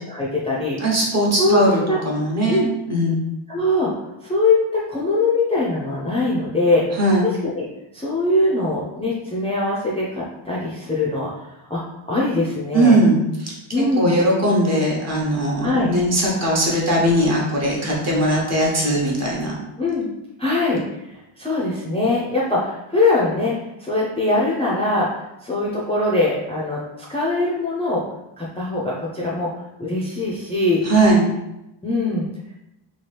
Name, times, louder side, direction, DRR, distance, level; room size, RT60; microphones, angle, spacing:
voice 1, 0.1-0.8 1.4-1.6 1.9-2.0 2.5-2.7 3.5-3.9 4.2-6.9 7.4-7.6 7.9-13.0 13.7-14.2 15.6-15.9 19.8-20.1 20.4-23.5 23.8-28.0 28.4-29.5 29.8-30.8 31.8-32.3, left 2 dB, 15° left, -6 dB, 0.4 m, -22 dB
voice 2, 0.8-3.2 6.9-7.3 12.7-13.5 14.0-19.5 30.8-31.3, right 1 dB, 35° right, -4 dB, 0.9 m, -19 dB
3.0 x 2.4 x 3.2 m, 0.91 s
wide cardioid pair, 125°, 49 cm